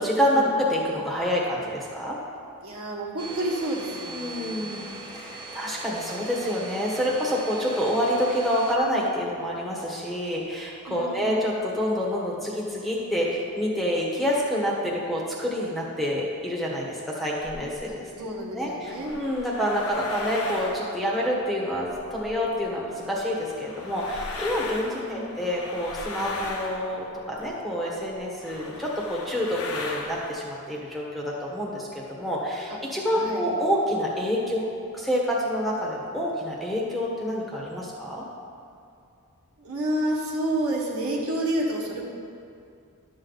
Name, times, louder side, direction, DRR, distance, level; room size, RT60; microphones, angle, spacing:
voice 1, 0.0-2.2 4.1-18.3 18.5-34.7 34.9-38.2, equal, ahead, -4 dB, 1.2 m, -27 dB
voice 2, 2.6-4.7 10.9-11.4 18.2-19.1 24.9-25.3 33.1-33.5 39.6-42.0, right 1 dB, 75° right, -3 dB, 1.5 m, -29 dB
Domestic sounds home sounds, 3.2-8.8, right 3 dB, 20° right, 1.1 m, -40 dB
sound 1, 17.4-17.9 18.7-22.6 23.0-27.6 28.1-28.2 28.4-30.3, left 2 dB, 75° left, 1.0 m, -38 dB
11.5 x 6.5 x 4.0 m, 2.5 s
head